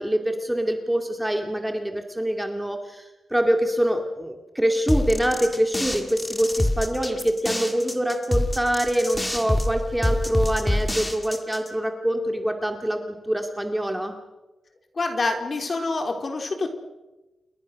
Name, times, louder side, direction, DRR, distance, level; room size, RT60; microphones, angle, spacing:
voice 1, 0.0-14.1, equal, 5° right, 4 dB, 2.2 m, -25 dB
sound 1, 4.9-11.7, left 1 dB, 10° left, 2.3 m, -26 dB
voice 2, 14.9-16.7, left 3 dB, 35° left, 5 dB, 3.6 m, -26 dB
29.5 x 22.0 x 6.5 m, 1.1 s
wide cardioid pair, 165°, 0 cm